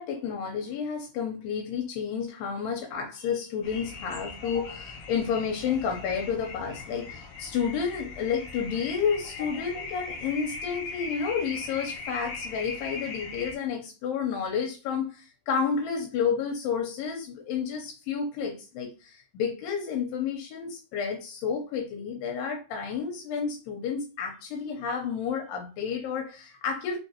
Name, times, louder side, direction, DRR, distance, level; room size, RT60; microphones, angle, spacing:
voice 1, 0.0-27.0, left 6 dB, 85° left, 2.5 m, -31 dB
sound 1, 3.6-13.5, left 4 dB, 70° left, 1.4 m, -39 dB
5.6 x 3.1 x 2.8 m
omnidirectional pair, 4.0 m